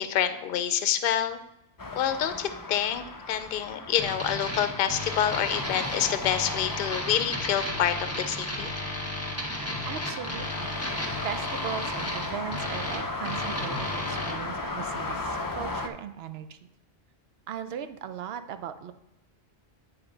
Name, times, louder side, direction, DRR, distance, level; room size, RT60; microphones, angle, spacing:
voice 1, 0.0-1.4 1.9-8.8, left 10 dB, 65° left, 10 dB, 0.7 m, -27 dB
sound 1, 1.8-15.9, left 2 dB, 35° left, 0.3 m, -36 dB
sound 2, 4.0-14.3, left 1 dB, 15° left, 1.2 m, -34 dB
voice 2, 9.9-10.8 11.2-16.7 17.5-18.9, right 9 dB, 75° right, 11 dB, 0.8 m, -38 dB
9.7 x 4.3 x 3.9 m, 0.88 s
omnidirectional pair, 1.0 m